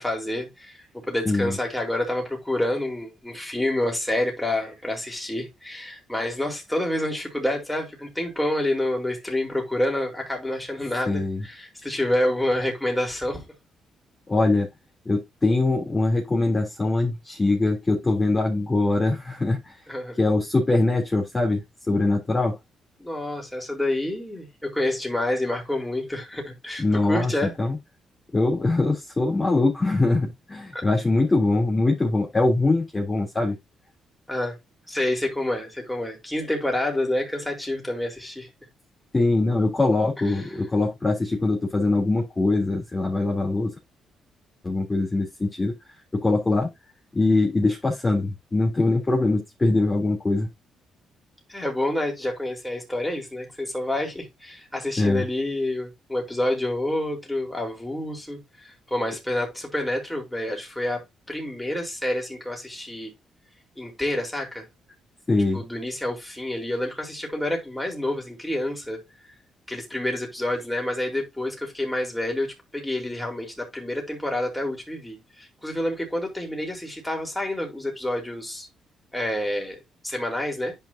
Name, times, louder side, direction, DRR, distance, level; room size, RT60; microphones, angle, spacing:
voice 1, 0.0-13.4 19.9-20.2 23.0-27.5 30.7-30.8 34.3-34.6 34.9-38.5 40.3-40.4 51.5-63.1 63.8-64.7 65.5-69.0 69.7-78.7 79.1-80.8, left 1 dB, 5° left, 4.3 m, -28 dB
voice 2, 1.2-1.6 11.1-11.4 14.3-14.7 15.0-19.7 20.2-21.6 21.9-22.6 26.8-27.3 27.6-27.8 28.3-33.5 39.1-43.7 44.6-45.7 46.1-46.7 47.1-50.5 55.0-55.2 65.3-65.6, left 2 dB, 20° left, 3.4 m, -22 dB
10.5 x 5.5 x 2.8 m
cardioid pair, 90°, 0 cm